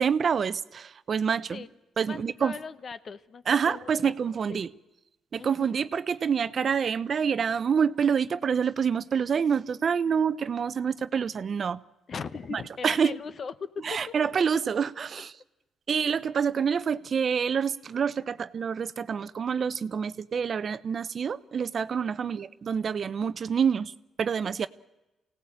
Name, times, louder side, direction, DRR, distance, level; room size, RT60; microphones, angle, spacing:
voice 1, 0.0-1.6 2.0-2.5 3.5-4.7 5.3-11.8 12.5-13.1 13.8-15.3 15.9-23.9 24.2-24.7, right 6 dB, 50° right, 0.7 m, -27 dB
voice 2, 2.0-4.1 4.5-4.7 5.4-5.8 12.1-14.1 22.0-22.4, left 5 dB, 45° left, 0.9 m, -39 dB
24.5 x 17.5 x 8.7 m
cardioid pair, 90°, 0 cm